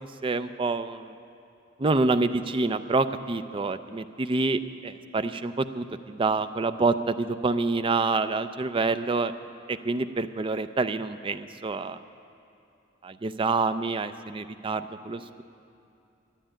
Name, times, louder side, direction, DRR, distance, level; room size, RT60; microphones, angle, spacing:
voice 1, 0.2-1.1 1.8-9.3 9.7-12.0 13.0-15.4, right 3 dB, 25° right, 10 dB, 0.5 m, -27 dB
12.0 x 11.5 x 9.0 m, 2.7 s
head